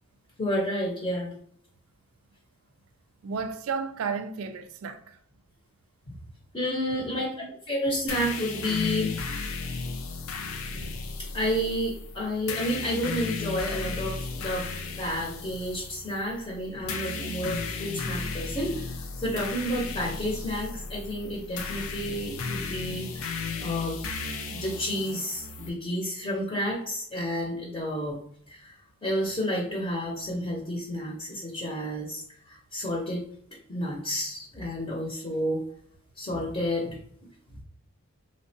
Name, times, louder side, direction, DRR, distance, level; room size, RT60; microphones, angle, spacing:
voice 1, 0.4-1.3 6.1-6.2 6.5-7.3 7.7-9.1 11.2-14.7 15.0-24.0 24.5-28.2 28.5-28.7 29.0-33.2 33.7-35.6 36.2-37.0, equal, 25° left, 0.6 m, -30 dB
voice 2, 3.2-5.2 7.0-7.5, right 5 dB, 85° right, 0.4 m, -33 dB
sound 1, 8.1-25.7, left 4 dB, 80° left, 0.5 m, -35 dB
3.5 x 2.1 x 2.6 m
head